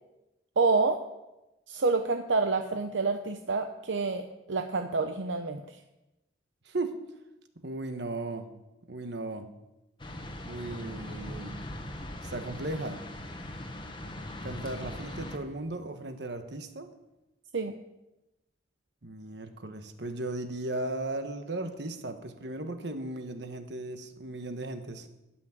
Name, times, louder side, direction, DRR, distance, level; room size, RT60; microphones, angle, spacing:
voice 1, 0.6-1.0 1.7-5.6 17.5-17.7, right 4 dB, 80° right, 6 dB, 0.7 m, -28 dB
voice 2, 6.7-7.0 7.6-8.5 8.9-9.5 10.4-11.5 12.2-13.0 14.4-16.9 19.0-25.1, right 2 dB, 65° right, 7 dB, 1.2 m, -36 dB
sound 1, 10.0-15.4, left 1 dB, 25° left, 1.2 m, -40 dB
12.5 x 6.1 x 9.3 m, 0.96 s
head